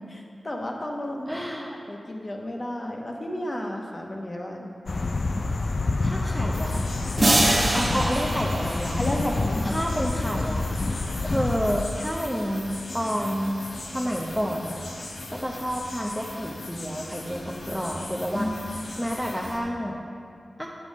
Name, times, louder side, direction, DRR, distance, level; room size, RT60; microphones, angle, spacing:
voice 1, 0.1-1.3 1.9-4.7 7.8-8.0 9.0-9.9 18.3-18.7, left 1 dB, 35° left, 0 dB, 1.2 m, -32 dB
voice 2, 1.3-1.7 6.0-6.9 7.7-9.0 9.6-10.6 11.2-13.6 13.9-14.8 15.3-18.5 19.0-20.0 20.6-20.7, equal, 5° left, -2 dB, 0.7 m, -29 dB
sound 1, 4.9-11.8, left 3 dB, 55° left, 0.4 m, -27 dB
sound 2, 6.5-19.6, left 1 dB, 85° left, 1.3 m, -39 dB
sound 3, 7.2-9.7, right 1 dB, 40° right, 1.0 m, -24 dB
9.2 x 6.9 x 5.3 m, 2.4 s
wide cardioid pair, 75°, 0 cm